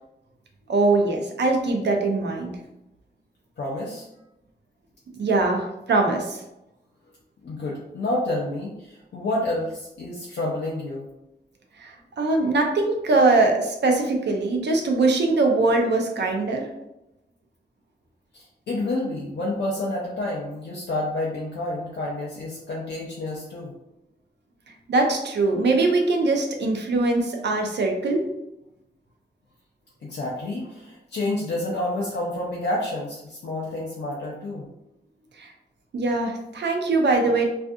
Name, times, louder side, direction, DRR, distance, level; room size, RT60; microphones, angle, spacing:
voice 1, 0.7-2.5 5.2-6.4 11.8-16.7 24.9-28.2 35.4-35.5 35.9-37.5, right 3 dB, 85° right, 2 dB, 0.5 m, -22 dB
voice 2, 3.6-4.1 7.4-11.1 18.3-23.7 30.0-34.7, left 1 dB, 90° left, -4 dB, 0.5 m, -29 dB
2.5 x 2.3 x 2.5 m, 0.90 s
wide cardioid pair, 140°, 18 cm